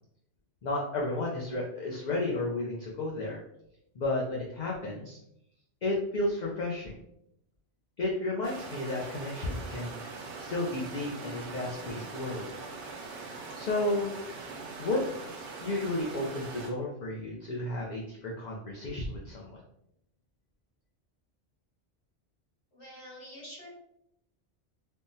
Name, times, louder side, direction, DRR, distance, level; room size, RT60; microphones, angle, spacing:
voice 1, 0.6-3.4 4.0-5.2 5.8-6.9 8.0-10.0 10.4-12.5 13.6-14.1 14.8-15.0 15.6-19.6, left 2 dB, 55° left, -2 dB, 0.5 m, -32 dB
sound 1, 8.4-16.7, right 4 dB, 80° right, 1.0 m, -42 dB
voice 2, 22.7-23.7, equal, 75° left, -7 dB, 1.8 m, -46 dB
3.5 x 2.1 x 2.6 m, 0.77 s
omnidirectional pair, 1.2 m